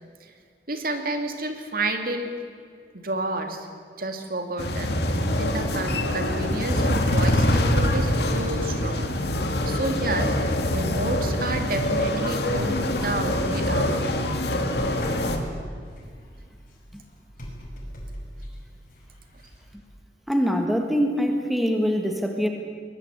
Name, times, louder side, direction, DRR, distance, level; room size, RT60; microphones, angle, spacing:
voice 1, 0.7-2.3 2.9-3.7 4.0-9.2 9.6-10.3 10.7-14.0, right 2 dB, 50° right, 5 dB, 2.5 m, -30 dB
sound 1, 4.6-15.4, left 1 dB, 60° left, 2.4 m, -24 dB
sound 2, 12.5-19.9, equal, 45° left, 6.1 m, -39 dB
voice 2, 20.3-22.5, equal, ahead, 3 dB, 1.7 m, -23 dB
23.0 x 20.5 x 8.2 m, 2.1 s
head